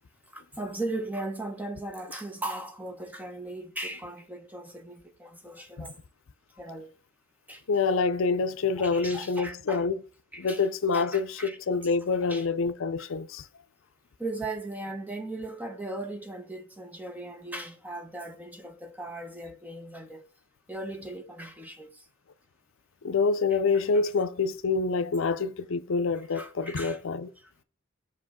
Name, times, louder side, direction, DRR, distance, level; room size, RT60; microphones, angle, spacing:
voice 1, 0.3-5.9 6.6-6.9 7.5-7.6 8.8-9.8 10.3-10.6 10.9-11.6 12.3-12.4 13.0-13.1 14.2-20.2 20.7-22.1 26.3-27.0 27.4-27.5, right 2 dB, 10° right, 0.9 m, -38 dB
voice 2, 7.7-10.0 10.4-13.5 23.0-27.3, left 4 dB, 65° left, 0.5 m, -27 dB
6.1 x 5.1 x 3.6 m
head